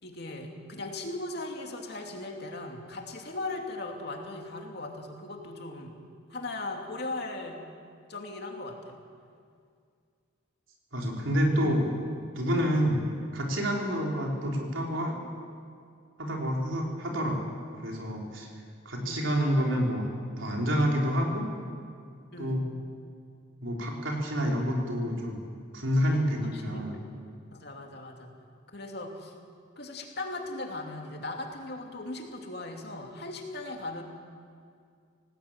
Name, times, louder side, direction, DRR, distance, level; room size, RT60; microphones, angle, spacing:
voice 1, 0.0-5.9 6.3-7.6 8.1-9.0 13.9-14.0 19.0-19.4 22.3-22.7 26.4-26.8 27.1-27.2 27.5-28.3 28.7-29.3 29.8-34.0, left 2 dB, 55° left, 2 dB, 2.8 m, -38 dB
voice 2, 10.9-11.9 12.4-13.0 13.3-15.2 16.2-17.4 17.8-18.5 18.9-20.1 20.4-21.5 22.4-22.6 23.6-25.4 25.7-26.9, equal, 80° right, -1 dB, 4.1 m, -28 dB
19.0 x 18.0 x 8.9 m, 2.2 s
head